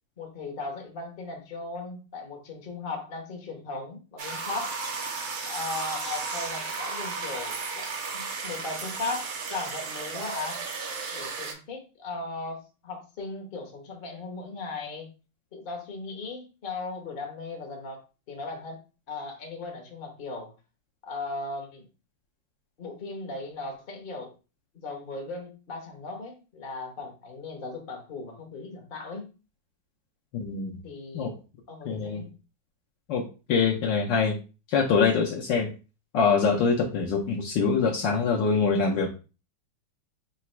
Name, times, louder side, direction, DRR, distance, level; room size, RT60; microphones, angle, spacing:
voice 1, 0.2-4.8 5.5-7.9 8.1-10.6 11.1-12.6 12.8-15.1 15.5-18.0 18.3-18.8 19.1-20.5 21.0-21.9 22.8-24.3 24.7-29.3 30.8-31.3 31.7-32.3, left 3 dB, 40° left, 1 dB, 0.7 m, -37 dB
sound 1, 4.2-11.5, right 4 dB, 75° right, 1.7 m, -34 dB
voice 2, 30.3-30.8 31.1-31.3 31.8-32.2 33.1-33.2 33.5-34.4 34.7-35.7 36.1-39.1, left 5 dB, 70° left, -1 dB, 1.2 m, -24 dB
4.0 x 2.3 x 4.3 m, 0.33 s
omnidirectional pair, 2.4 m